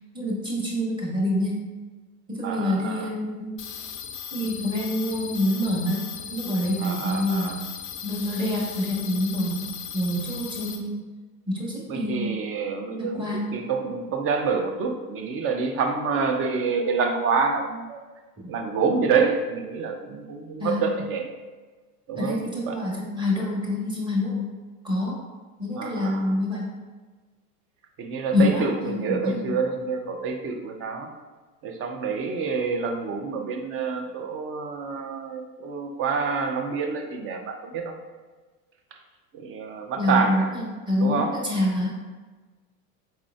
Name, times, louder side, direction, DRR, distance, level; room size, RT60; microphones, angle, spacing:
voice 1, 0.1-1.6 2.3-3.5 4.3-6.0 6.3-7.5 8.0-9.7 9.9-11.0 11.5-12.3 13.0-13.6 20.6-20.9 22.1-24.4 24.8-25.2 25.6-26.7 28.3-29.6 40.0-41.9, left 1 dB, 10° right, -4 dB, 1.2 m, -26 dB
voice 2, 2.4-3.1 6.8-7.6 11.9-13.3 13.5-18.0 18.5-21.3 22.1-22.4 22.6-22.8 25.7-26.4 28.0-31.1 31.6-37.9 39.3-40.6 41.0-41.3, right 5 dB, 30° right, 4 dB, 0.5 m, -27 dB
sound 1, 3.6-10.8, left 8 dB, 30° left, 0.4 m, -37 dB
4.3 x 3.6 x 2.3 m, 1.3 s
hypercardioid pair, 95°, 47 cm